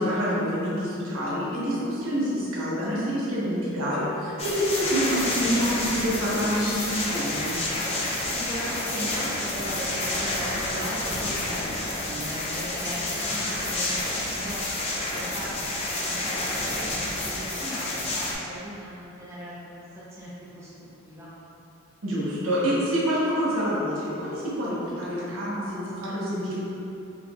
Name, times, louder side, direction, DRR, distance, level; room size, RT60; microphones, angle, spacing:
voice 1, 0.0-7.6 22.0-26.5, equal, 75° right, -8 dB, 1.1 m, -27 dB
sound 1, 4.4-18.3, left 2 dB, 30° left, 0.4 m, -29 dB
sound 2, 6.5-9.3, left 2 dB, 80° left, 0.8 m, -44 dB
voice 2, 8.3-14.8 15.1-21.3, equal, 15° right, -10 dB, 0.6 m, -38 dB
sound 3, 10.9-12.2, equal, 45° right, 0.8 m, -41 dB
4.6 x 3.0 x 2.4 m, 2.9 s
head